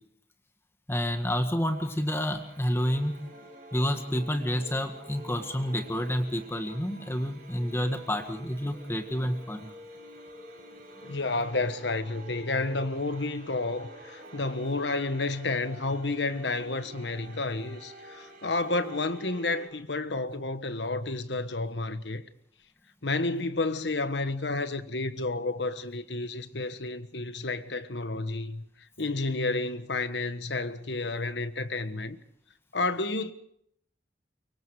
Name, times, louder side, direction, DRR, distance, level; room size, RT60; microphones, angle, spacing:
voice 1, 0.9-3.2 3.7-9.7, equal, 15° left, 1.8 m, -29 dB
sound 1, 1.7-19.7, right 1 dB, 55° right, 6.4 m, -48 dB
voice 2, 11.0-22.2 23.0-28.6 29.0-32.2 32.7-33.3, left 3 dB, 80° left, 1.4 m, -31 dB
24.5 x 23.5 x 4.9 m
head